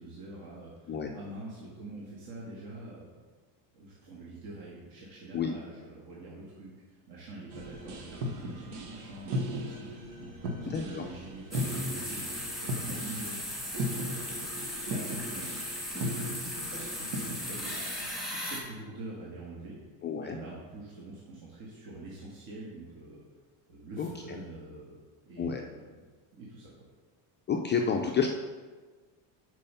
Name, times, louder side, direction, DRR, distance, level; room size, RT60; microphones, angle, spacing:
voice 1, 0.0-3.1 3.7-15.8 16.2-17.7 18.0-19.8 20.2-23.2 23.7-26.1 26.3-26.9, right 2 dB, 50° right, -5 dB, 1.6 m, -45 dB
sound 1, 7.5-18.1, equal, 85° right, 1.2 m, -37 dB
voice 2, 10.7-11.0 20.0-20.4 24.0-24.4 25.4-25.6 27.5-28.3, left 6 dB, 25° left, 2 dB, 0.4 m, -30 dB
sound 2, 11.5-18.6, left 1 dB, ahead, 1.6 m, -37 dB
5.5 x 4.7 x 5.5 m, 1.4 s
supercardioid pair, 115°, 46 cm